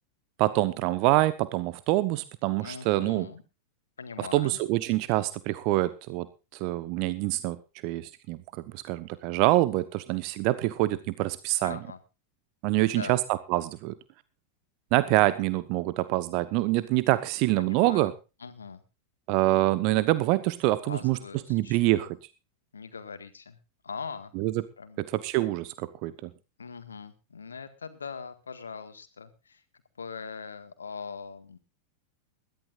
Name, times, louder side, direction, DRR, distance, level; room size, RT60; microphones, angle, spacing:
voice 1, 0.4-3.3 4.3-6.3 6.5-7.6 7.8-8.4 8.7-11.8 12.6-13.9 14.9-18.1 19.3-21.2 21.5-22.2 24.3-24.5 25.1-26.3, right 18 dB, 45° right, 15 dB, 1.0 m, -25 dB
voice 2, 2.6-3.4 4.0-4.6 11.6-12.0 12.7-13.2 17.6-18.1 18.4-18.8 20.9-22.1 22.7-23.6 23.8-24.3 24.8-25.0 26.6-29.6 30.0-31.6, left 5 dB, 70° left, 11 dB, 1.7 m, -41 dB
21.0 x 14.5 x 2.5 m, 0.30 s
figure-of-eight pair, 90°, 0 cm